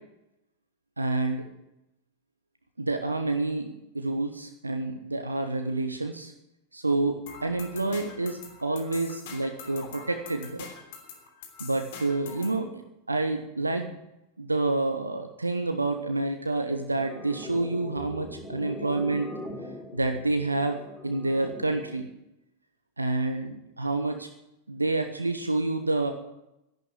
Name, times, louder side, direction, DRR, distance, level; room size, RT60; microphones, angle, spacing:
voice 1, 1.0-1.4 2.8-3.7 3.9-6.3 6.7-10.7 11.6-14.0 14.4-19.3 19.9-22.1 23.0-24.3 24.7-26.1, right 2 dB, 80° right, 6 dB, 1.2 m, -28 dB
sound 1, 7.3-12.6, left 6 dB, 50° left, 3.2 m, -44 dB
sound 2, 17.0-22.0, left 1 dB, 15° left, 3.3 m, -41 dB
12.0 x 11.5 x 9.3 m, 0.88 s
figure-of-eight pair, 90°, 0 cm